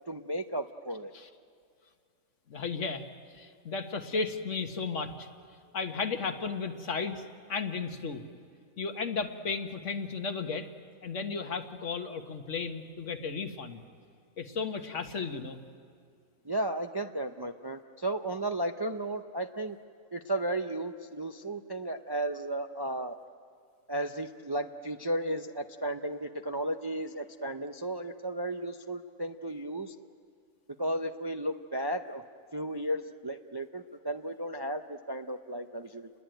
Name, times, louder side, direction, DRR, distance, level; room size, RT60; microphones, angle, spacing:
voice 1, 0.1-1.1 16.4-19.8 20.1-23.1 23.9-29.9 30.8-32.2 32.5-36.1, right 1 dB, 25° right, 7 dB, 0.5 m, -34 dB
voice 2, 2.5-3.1 3.3-5.3 5.7-7.2 7.5-8.2 8.8-10.7 11.0-13.8 14.4-15.6, left 4 dB, 65° left, 7 dB, 1.7 m, -34 dB
29.0 x 21.0 x 9.1 m, 2.3 s
omnidirectional pair, 1.4 m